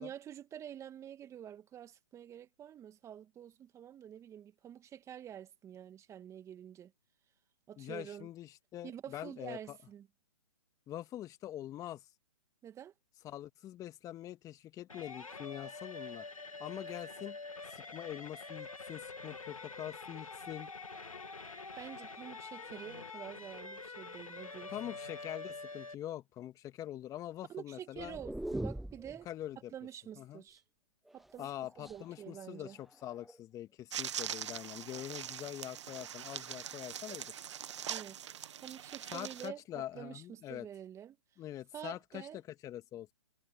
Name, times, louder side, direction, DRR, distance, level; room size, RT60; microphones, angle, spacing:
voice 1, 0.0-6.9 7.7-8.3 8.8-10.1 12.6-12.9 21.8-24.7 27.5-29.3 29.7-30.6 31.1-32.8 37.9-38.3 38.6-41.2 41.7-42.4, right 10 dB, 15° right, 2.3 m, -48 dB
voice 2, 7.8-9.8 10.9-12.1 13.2-16.3 16.6-17.4 17.7-20.7 24.7-28.2 29.3-29.7 30.2-30.4 31.4-37.3 39.1-40.7 41.4-43.1, left 12 dB, 20° left, 2.0 m, -44 dB
sound 1, 14.9-25.9, left 3 dB, 90° left, 2.5 m, -46 dB
sound 2, 28.0-29.2 31.1-32.1 32.9-33.4, right 1 dB, ahead, 0.5 m, -41 dB
sound 3, 33.9-39.5, right 9 dB, 60° right, 1.7 m, -42 dB
figure-of-eight pair, 130°, 17 cm